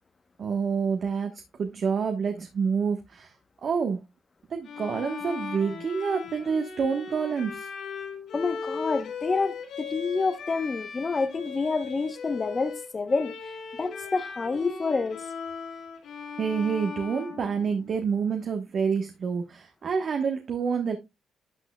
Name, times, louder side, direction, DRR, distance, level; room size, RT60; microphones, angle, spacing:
voice 1, 0.4-3.3 3.6-4.0 4.5-7.7 16.4-21.0, right 6 dB, 55° right, 1.2 m, -28 dB
Bowed string instrument, 4.6-18.1, left 5 dB, 75° left, 4.7 m, -38 dB
voice 2, 8.3-13.4 13.8-15.2, left 4 dB, 30° left, 0.9 m, -28 dB
12.0 x 6.1 x 2.3 m
cardioid pair, 90°, 0 cm